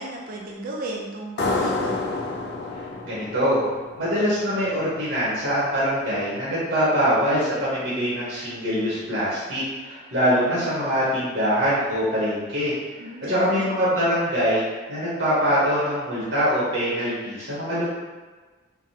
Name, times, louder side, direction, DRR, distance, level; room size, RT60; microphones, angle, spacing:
voice 1, 0.0-2.1 13.0-13.7, right 2 dB, 45° right, -1 dB, 0.5 m, -34 dB
sound 1, 1.4-4.7, left 2 dB, 55° left, 0.4 m, -29 dB
voice 2, 3.0-3.6 4.0-12.7 13.3-14.6 14.9-17.8, equal, 75° right, -9 dB, 1.0 m, -23 dB
3.3 x 2.2 x 2.7 m, 1.3 s
head